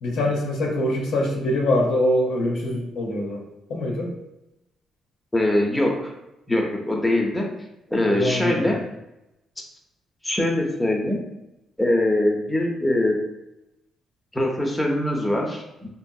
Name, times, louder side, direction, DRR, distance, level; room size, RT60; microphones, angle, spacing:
voice 1, 0.0-4.2 8.1-8.7, left 1 dB, 80° left, -1 dB, 0.7 m, -24 dB
voice 2, 5.3-6.1 6.5-7.5 7.9-8.8 10.2-11.2 11.8-13.2 14.3-15.9, left 1 dB, 10° left, 0 dB, 0.6 m, -22 dB
2.9 x 2.6 x 2.2 m, 0.91 s
cardioid pair, 90°, 0 cm